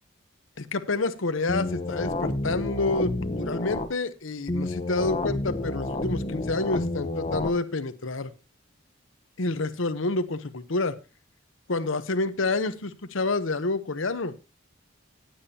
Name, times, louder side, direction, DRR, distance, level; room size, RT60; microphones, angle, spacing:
voice 1, 0.6-8.3 9.4-11.0 11.7-14.3, left 3 dB, 70° left, 11 dB, 0.9 m, -28 dB
sound 1, 1.5-3.9 4.5-7.5, left 2 dB, 30° left, 1.0 m, -30 dB
15.0 x 8.8 x 2.8 m, 0.29 s
head